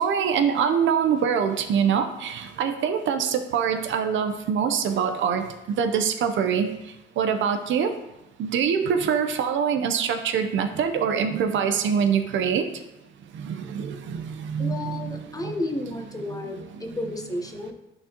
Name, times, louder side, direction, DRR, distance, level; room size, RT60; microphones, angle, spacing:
voice 1, 0.0-5.4 5.8-8.0 8.4-12.7 13.3-15.5 16.3-17.0, right 7 dB, 75° right, 7 dB, 0.7 m, -24 dB
voice 2, 14.6-17.7, left 1 dB, 20° left, 3 dB, 1.0 m, -32 dB
10.5 x 3.9 x 2.9 m, 0.92 s
cardioid pair, 90°, 20 cm